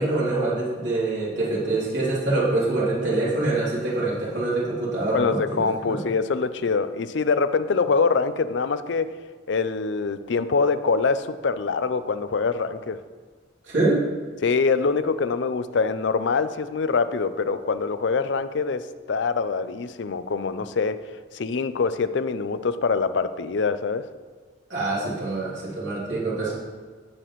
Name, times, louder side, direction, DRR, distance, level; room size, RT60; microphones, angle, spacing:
voice 1, 0.0-6.0 13.6-14.0 24.7-26.5, right 2 dB, 70° right, -7 dB, 3.0 m, -25 dB
voice 2, 5.1-9.1 9.5-13.0 14.4-21.0 21.3-24.1, left 4 dB, 65° left, 12 dB, 0.5 m, -24 dB
16.5 x 5.9 x 3.1 m, 1.5 s
head